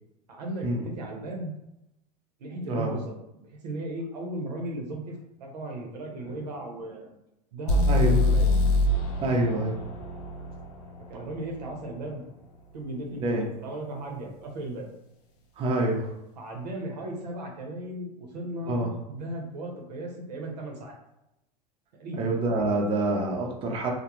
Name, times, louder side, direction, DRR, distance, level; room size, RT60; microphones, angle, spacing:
voice 1, 0.3-1.5 2.4-5.1 5.4-7.1 7.5-8.7 11.1-12.3 12.7-13.2 13.6-14.9 16.4-18.8 19.1-21.0 22.0-22.3, right 1 dB, 85° right, 1 dB, 0.7 m, -36 dB
voice 2, 2.6-3.0 6.3-6.4 7.9-8.2 9.2-9.8 13.2-13.5 15.6-16.1 18.7-18.9 22.2-23.9, right 2 dB, 25° right, 0 dB, 0.5 m, -26 dB
sound 1, 7.7-11.6, left 2 dB, 70° left, 0.6 m, -25 dB
2.3 x 2.1 x 2.9 m, 0.87 s
hypercardioid pair, 110°, 21 cm